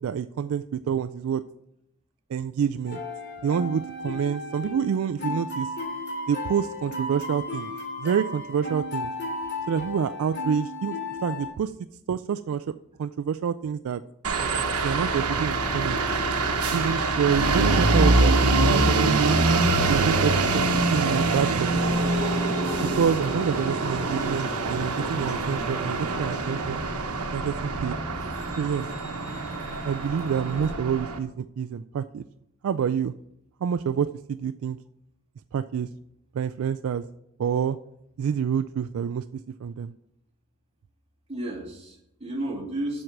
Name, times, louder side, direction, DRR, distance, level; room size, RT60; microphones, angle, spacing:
voice 1, 0.0-1.4 2.3-3.0 3.4-5.7 6.3-7.7 8.0-9.1 9.7-11.0 11.2-11.7 12.1-14.0 14.8-16.0 16.7-19.4 19.9-20.6 20.9-22.2 22.9-26.8 27.3-28.0 28.6-28.9 29.8-32.2 32.6-33.1 33.6-34.8 35.5-35.9 36.3-37.0 37.4-37.8 38.2-39.2 39.6-39.9, right 7 dB, 65° right, 10 dB, 0.3 m, -27 dB
sound 1, 2.9-11.5, left 2 dB, 50° left, 2.8 m, -34 dB
sound 2, 14.2-31.2, right 3 dB, 80° right, 1.1 m, -24 dB
sound 3, 14.3-30.7, equal, 15° left, 2.7 m, -39 dB
voice 2, 41.3-43.0, right 1 dB, 25° right, -3 dB, 2.5 m, -33 dB
7.7 x 6.5 x 5.9 m, 0.79 s
head